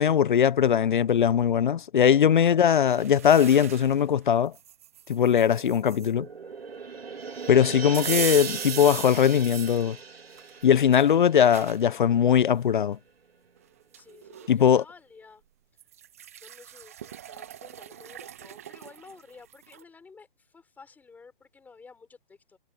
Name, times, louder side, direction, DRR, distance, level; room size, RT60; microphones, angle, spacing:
voice 1, 0.0-4.5 5.1-6.3 7.5-10.0 10.6-13.0 14.5-14.8, left 8 dB, 55° left, 0.7 m, -20 dB
sound 1, 2.9-4.0 4.5-6.1 7.9-9.8 10.4-11.8 12.4-12.5 13.6-13.7 13.9-14.5 15.8-19.8, right 11 dB, 15° right, 0.5 m, -38 dB
sound 2, 5.6-12.2 12.5-12.6, right 5 dB, 85° right, 2.5 m, -39 dB
voice 2, 13.9-15.4 16.4-20.3 20.5-22.6, left 4 dB, 5° left, 5.9 m, -52 dB
hypercardioid pair, 155°, 29 cm